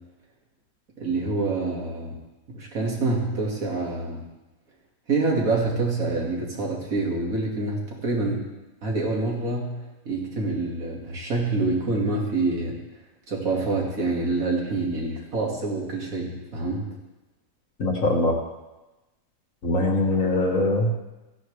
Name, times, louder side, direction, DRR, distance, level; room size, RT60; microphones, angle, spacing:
voice 1, 1.0-2.2 2.5-4.2 5.1-8.5 8.8-9.7 10.1-12.8 13.3-16.9, right 3 dB, 70° right, -2 dB, 2.6 m, -26 dB
voice 2, 17.8-18.4 19.6-20.9, left 2 dB, 60° left, 1 dB, 1.8 m, -22 dB
14.5 x 10.5 x 3.3 m, 1.1 s
omnidirectional pair, 1.6 m